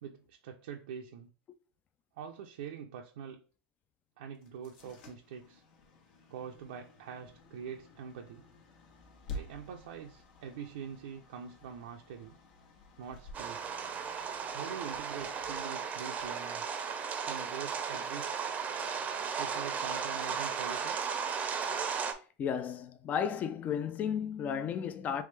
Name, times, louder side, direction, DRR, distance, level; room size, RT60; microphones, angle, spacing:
voice 1, 0.0-1.3 2.1-3.4 4.2-5.6 6.3-8.4 9.3-12.3 13.0-13.6 14.5-16.6 17.2-18.5 19.4-21.0, right 7 dB, 85° right, 0.5 m, -44 dB
sound 1, 4.3-17.3, left 2 dB, 75° left, 1.1 m, -51 dB
sound 2, 13.3-22.1, right 6 dB, 30° right, 0.6 m, -35 dB
voice 2, 22.4-25.2, left 8 dB, 30° left, 0.4 m, -33 dB
3.4 x 3.3 x 3.3 m
supercardioid pair, 130°, 5 cm